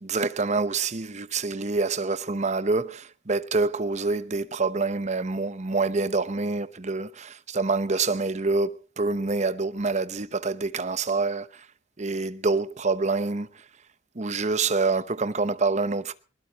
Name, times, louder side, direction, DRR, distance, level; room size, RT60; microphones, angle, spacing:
voice 1, 0.0-11.6 12.0-13.5 14.2-16.1, right 3 dB, 35° right, 0.9 m, -26 dB
20.5 x 19.5 x 3.0 m
head